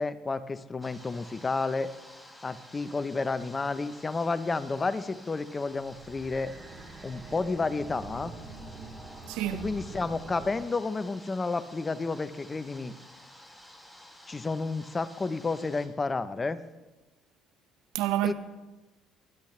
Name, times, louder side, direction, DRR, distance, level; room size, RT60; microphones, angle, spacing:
voice 1, 0.0-1.9 2.4-6.5 7.0-8.3 9.6-12.9 14.3-16.6 18.2-18.3, left 3 dB, 25° left, 0.8 m, -31 dB
sound 1, 0.8-15.9, left 1 dB, 5° left, 2.5 m, -52 dB
sound 2, 5.7-10.6, right 3 dB, 35° right, 3.0 m, -45 dB
voice 2, 9.3-9.7 17.9-18.3, right 13 dB, 90° right, 0.9 m, -28 dB
24.0 x 10.5 x 3.3 m
supercardioid pair, 80°, 0 cm